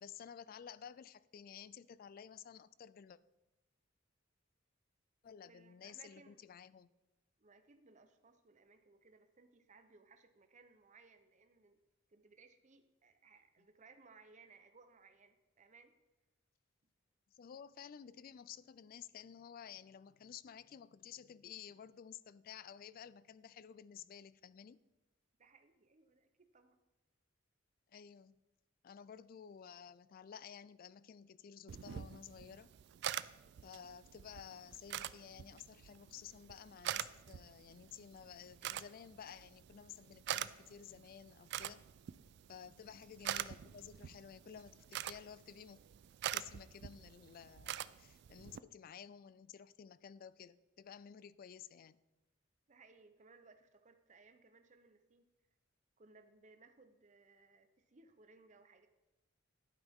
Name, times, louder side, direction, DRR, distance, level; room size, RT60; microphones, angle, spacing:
voice 1, 0.0-3.2 5.2-6.9 17.3-24.8 27.9-28.4 28.8-32.7 33.6-41.9 42.5-45.8 46.3-52.0, left 8 dB, 45° left, 0.3 m, -53 dB
voice 2, 5.4-6.4 7.4-11.8 12.1-15.9 16.8-16.9 25.4-26.8 42.9-43.1 52.7-55.3 56.0-58.9, right 4 dB, 35° right, 0.7 m, -64 dB
sound 1, 31.7-48.6, right 11 dB, 55° right, 0.3 m, -46 dB
11.0 x 9.1 x 3.6 m
head